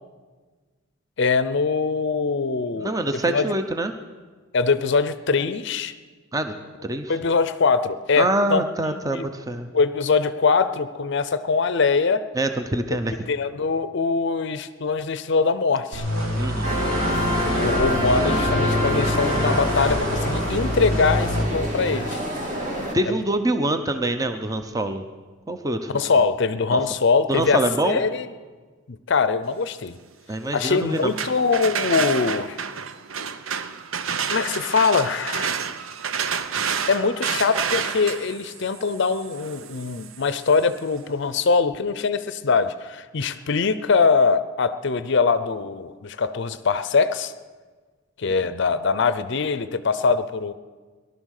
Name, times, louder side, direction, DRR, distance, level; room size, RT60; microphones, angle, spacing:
voice 1, 1.2-2.9 3.3-3.5 4.5-5.9 7.1-8.6 8.9-9.2 9.7-12.3 12.9-13.0 13.3-16.1 17.5-22.2 23.1-23.2 25.9-28.3 28.9-30.0 30.5-32.6 34.3-35.5 36.9-47.3 48.2-50.5, left 4 dB, 55° left, 13 dB, 0.6 m, -22 dB
voice 2, 2.8-3.9 6.3-6.5 6.8-7.2 8.2-9.7 12.3-13.2 16.4-16.7 22.9-25.0 25.5-26.0 26.7-26.8 27.3-28.0 30.3-31.1, right 1 dB, 15° right, 7 dB, 0.7 m, -25 dB
sound 1, 15.9-21.4, left 1 dB, 90° right, 3.6 m, -26 dB
sound 2, 16.6-22.9, equal, 35° right, 2.4 m, -26 dB
sound 3, 30.9-40.7, right 7 dB, 70° right, 0.7 m, -30 dB
18.5 x 12.0 x 6.5 m, 1.4 s
head